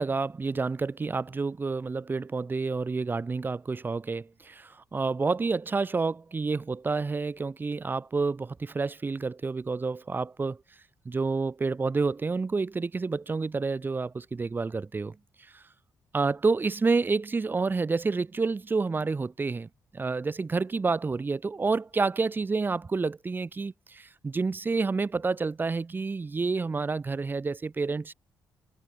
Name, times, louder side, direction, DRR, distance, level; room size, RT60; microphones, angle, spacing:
voice 1, 0.0-10.6 11.0-15.2 15.5-15.6 16.1-28.1, right 4 dB, 25° right, 0.9 m, -29 dB
cardioid pair, 105°, 8 cm